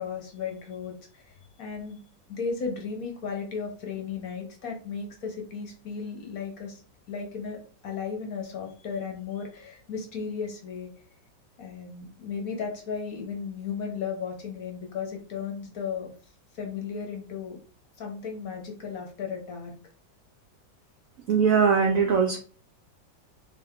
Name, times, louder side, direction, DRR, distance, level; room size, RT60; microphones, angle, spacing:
voice 1, 0.0-2.0 2.3-6.8 7.1-10.9 11.6-16.1 16.5-17.6 18.0-19.7, left 6 dB, 55° left, 2 dB, 1.2 m, -35 dB
voice 2, 21.3-22.4, right 6 dB, 75° right, 2 dB, 0.7 m, -21 dB
3.5 x 3.3 x 3.6 m, 0.41 s
omnidirectional pair, 2.0 m